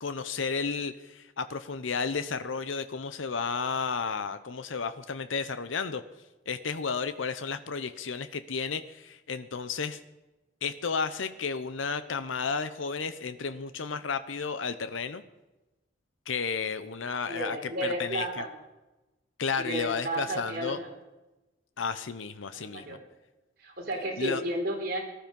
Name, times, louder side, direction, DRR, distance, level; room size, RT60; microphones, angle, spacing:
voice 1, 0.0-6.0 6.5-10.0 10.6-15.2 16.3-17.6 17.8-18.4 19.4-20.8 21.8-23.0 24.2-24.4, left 5 dB, 85° left, 11 dB, 0.8 m, -32 dB
voice 2, 17.3-18.5 19.6-20.9 22.5-23.0 23.6-25.0, right 1 dB, 50° right, 1 dB, 3.7 m, -32 dB
18.5 x 12.0 x 5.3 m, 1.0 s
head